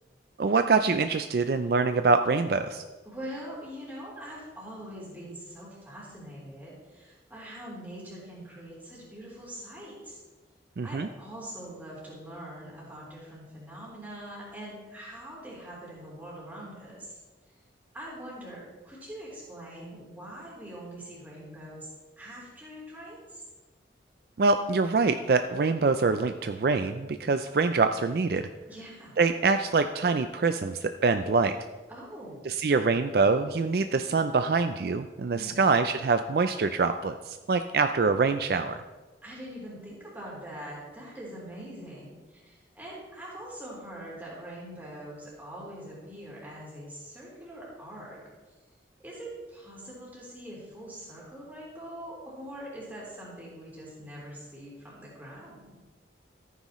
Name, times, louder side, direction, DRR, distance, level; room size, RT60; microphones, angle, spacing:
voice 1, 0.4-2.8 10.8-11.1 24.4-28.5 29.2-31.6 32.5-38.8, right 4 dB, 55° right, 9 dB, 0.4 m, -25 dB
voice 2, 3.1-10.2 10.8-17.2 17.9-21.9 22.2-23.4 28.7-29.2 31.9-32.4 35.3-35.7 39.2-48.2 49.0-55.8, right 1 dB, 10° right, -6 dB, 3.6 m, -43 dB
14.5 x 9.5 x 3.1 m, 1.2 s
head